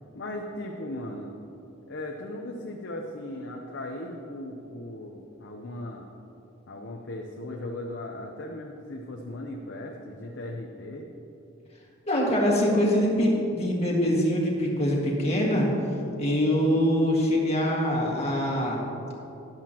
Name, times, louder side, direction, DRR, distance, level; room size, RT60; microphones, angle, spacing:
voice 1, 0.1-1.3 1.9-6.1 6.7-11.1, left 1 dB, 60° left, 0 dB, 0.8 m, -37 dB
voice 2, 12.1-15.7 16.2-18.8, equal, 30° left, -3 dB, 1.9 m, -24 dB
13.5 x 10.5 x 3.0 m, 2.8 s
head